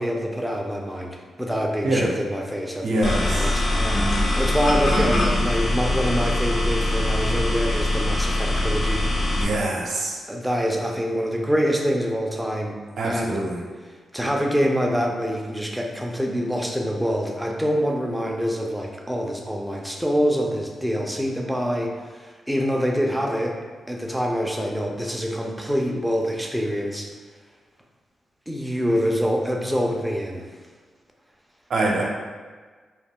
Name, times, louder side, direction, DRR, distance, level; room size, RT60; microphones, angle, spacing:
voice 1, 0.0-9.1 10.3-12.8 13.0-13.4 14.1-23.6 23.9-27.1 28.5-30.5, equal, 5° right, 0 dB, 0.4 m, -25 dB
voice 2, 2.8-3.5 9.4-10.2 13.0-13.6 31.7-32.0, right 1 dB, 70° right, -2 dB, 0.6 m, -24 dB
sound 1, 3.0-9.5, left 1 dB, 50° left, 0.6 m, -22 dB
2.2 x 2.2 x 3.5 m, 1.5 s
cardioid pair, 75°, 0 cm